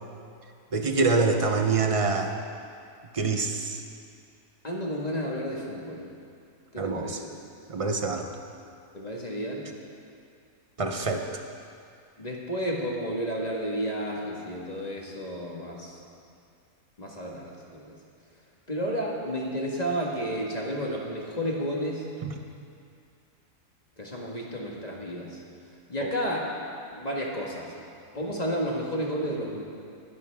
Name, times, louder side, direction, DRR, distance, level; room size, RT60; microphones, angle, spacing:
voice 1, 0.7-2.3 3.1-3.8 6.8-7.2 7.7-8.3 10.8-11.2 22.2-22.3 26.0-26.1, right 4 dB, 30° right, 4 dB, 0.7 m, -25 dB
voice 2, 4.6-6.1 6.7-7.3 8.9-9.7 12.2-16.0 17.0-17.9 18.7-22.0 24.0-25.4 25.9-26.5 26.9-27.7 28.1-29.6, equal, 25° left, -2 dB, 1.6 m, -31 dB
19.5 x 11.5 x 3.5 m, 2.4 s
omnidirectional pair, 1.6 m